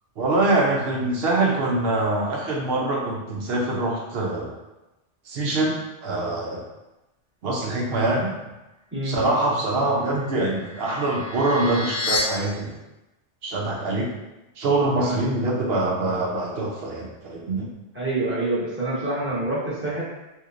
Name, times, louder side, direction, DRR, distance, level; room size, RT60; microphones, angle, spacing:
voice 1, 0.2-4.5 5.3-6.6 7.4-8.3 9.0-12.8 13.4-14.1 14.6-17.7, right 2 dB, 60° right, -2 dB, 0.8 m, -24 dB
sound 1, 10.0-12.2, left 3 dB, 60° left, 0.8 m, -31 dB
voice 2, 17.9-20.0, right 2 dB, 10° right, -9 dB, 1.0 m, -26 dB
3.2 x 3.0 x 2.5 m, 1.0 s
omnidirectional pair, 1.2 m